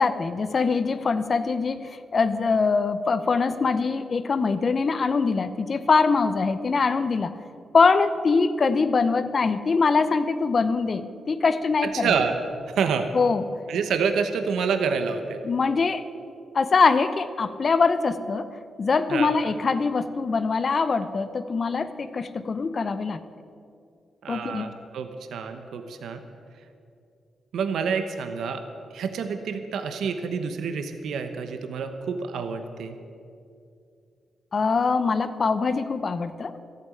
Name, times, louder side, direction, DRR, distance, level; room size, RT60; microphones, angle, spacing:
voice 1, 0.0-7.3 7.7-12.1 13.1-13.5 15.4-16.1 16.5-18.5 18.8-23.2 24.3-24.7 34.5-36.6, left 4 dB, 45° left, 12 dB, 0.8 m, -23 dB
voice 2, 11.8-12.4 12.6-13.1 13.7-15.4 19.1-19.3 24.2-26.2 27.5-28.6 28.9-32.9, right 6 dB, 85° right, 8 dB, 1.0 m, -28 dB
14.0 x 8.7 x 8.7 m, 2.5 s
cardioid pair, 95°, 0 cm